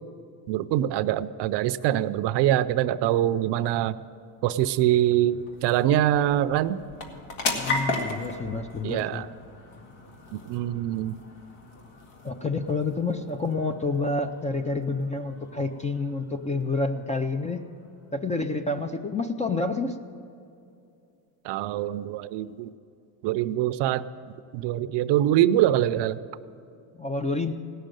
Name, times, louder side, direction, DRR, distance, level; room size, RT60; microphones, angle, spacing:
voice 1, 0.5-4.0 4.4-6.8 8.8-9.3 10.3-11.2 21.4-22.7 23.2-24.0 24.5-26.2, right 12 dB, 60° right, 13 dB, 0.6 m, -24 dB
sound 1, 4.0-18.8, left 3 dB, 75° left, 2.2 m, -38 dB
voice 2, 7.6-9.2 12.2-17.6 18.1-20.0 27.0-27.5, left 3 dB, 15° left, 8 dB, 0.4 m, -28 dB
17.5 x 6.5 x 9.0 m, 2.6 s
cardioid pair, 125°, 48 cm